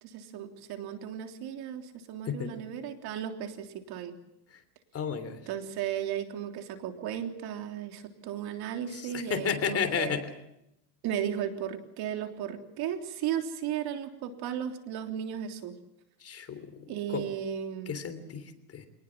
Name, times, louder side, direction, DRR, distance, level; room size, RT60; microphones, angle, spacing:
voice 1, 0.0-4.2 5.5-10.2 11.0-15.8 16.9-18.0, right 9 dB, 50° right, 6 dB, 3.4 m, -35 dB
voice 2, 4.9-5.4 8.9-10.3 16.2-17.3 17.9-18.9, left 7 dB, 30° left, 10 dB, 3.3 m, -33 dB
26.5 x 19.5 x 7.4 m, 0.84 s
supercardioid pair, 135°, 48 cm